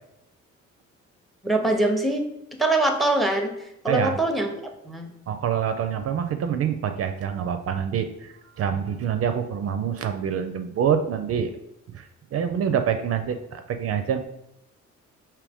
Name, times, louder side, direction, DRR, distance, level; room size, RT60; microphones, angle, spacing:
voice 1, 1.4-2.3 2.6-3.5 3.8-4.5 4.9-5.1, right 2 dB, ahead, 4 dB, 0.6 m, -23 dB
voice 2, 5.3-11.5 11.9-14.2, right 8 dB, 50° right, 7 dB, 0.4 m, -26 dB
4.8 x 2.8 x 3.5 m, 0.84 s
cardioid pair, 90°, 30 cm